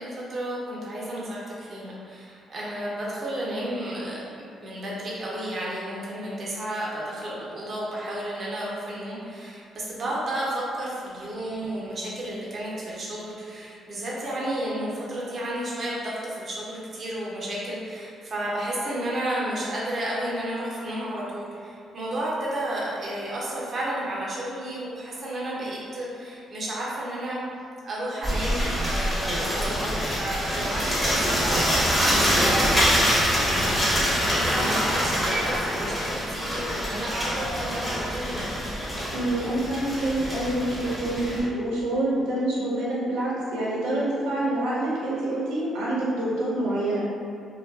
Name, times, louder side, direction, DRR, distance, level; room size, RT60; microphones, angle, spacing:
voice 1, 0.0-27.4 27.8-38.5, right 1 dB, 50° right, -6 dB, 0.7 m, -32 dB
sound 1, 28.2-41.4, equal, 5° left, 0.8 m, -25 dB
voice 2, 39.1-47.0, right 1 dB, 90° right, -7 dB, 0.5 m, -26 dB
2.4 x 2.2 x 2.3 m, 2.4 s
cardioid pair, 90°, 0 cm